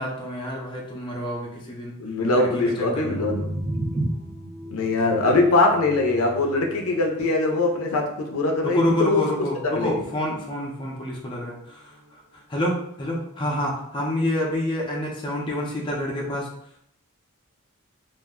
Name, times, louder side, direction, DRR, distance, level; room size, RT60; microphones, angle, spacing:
voice 1, 0.0-1.9 2.3-3.2 8.6-12.2 12.5-16.5, left 1 dB, 25° left, -3 dB, 0.5 m, -28 dB
voice 2, 2.0-3.4 4.7-9.2 9.8-9.9, left 2 dB, 80° left, 2 dB, 0.5 m, -22 dB
sound 1, 2.7-12.6, equal, 50° right, 0.9 m, -40 dB
sound 2, 2.8-8.9, right 1 dB, 25° right, 0.5 m, -35 dB
2.4 x 2.1 x 3.5 m, 0.71 s
head